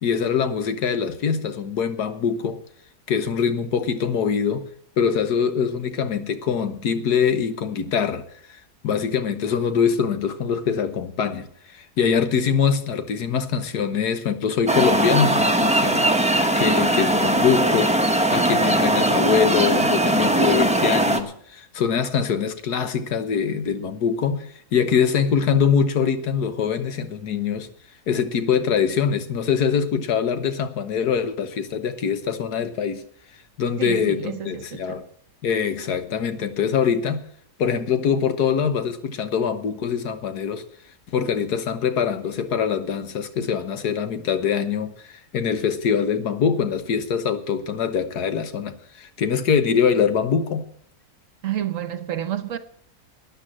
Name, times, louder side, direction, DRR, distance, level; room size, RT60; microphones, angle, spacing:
voice 1, 0.0-2.6 3.1-4.6 5.0-8.2 8.5-16.1 16.6-18.0 18.3-24.5 24.7-27.7 28.1-33.0 33.6-35.0 35.4-37.3 37.6-40.6 41.1-50.7, left 7 dB, 80° left, 1.7 m, -23 dB
sound 1, 14.7-21.2, right 1 dB, 5° right, 0.9 m, -20 dB
voice 2, 33.8-35.0 51.4-52.6, right 10 dB, 60° right, 1.2 m, -29 dB
13.0 x 9.9 x 7.5 m
omnidirectional pair, 1.7 m